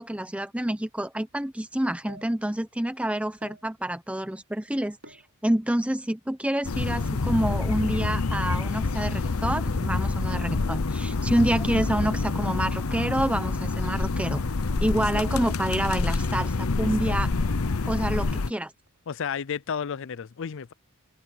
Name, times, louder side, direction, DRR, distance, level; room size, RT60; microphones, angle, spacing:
voice 1, 0.0-14.4 14.8-17.3 17.8-18.7, right 1 dB, 5° right, 0.9 m, -28 dB
sound 1, 2.1-2.5 3.2-3.7 5.0-5.4 6.1-8.5 9.1-9.5 10.6-11.0 11.7-11.8 12.0-12.4 13.5-14.0 14.3-14.4 14.7-14.8 15.2-15.6 15.9-16.9 17.4-17.8 18.1-19.3 19.6-19.7, right 2 dB, 65° right, 3.0 m, -50 dB
sound 2, 6.6-18.5, left 3 dB, 75° left, 0.8 m, -27 dB
voice 2, 14.9-15.2 16.7-17.2 19.1-20.7, left 7 dB, 60° left, 0.5 m, -33 dB
head